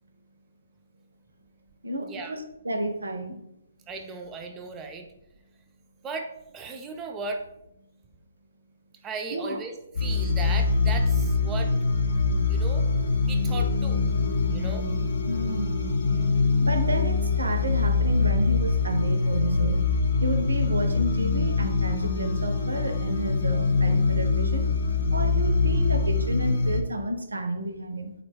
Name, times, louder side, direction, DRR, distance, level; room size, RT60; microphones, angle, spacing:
voice 1, 1.8-3.4 9.3-9.6 15.3-16.0 16.6-19.8 20.2-24.7 25.1-28.1, right 1 dB, 80° right, 7 dB, 0.5 m, -31 dB
voice 2, 3.9-5.1 6.0-7.4 9.0-9.7 10.0-11.7 12.5-12.9 13.3-14.0 14.5-14.8, right 4 dB, 20° right, 4 dB, 0.4 m, -36 dB
sound 1, 10.0-26.8, left 4 dB, 60° left, 0.5 m, -24 dB
3.7 x 2.2 x 3.2 m, 0.83 s
figure-of-eight pair, 135°, 0 cm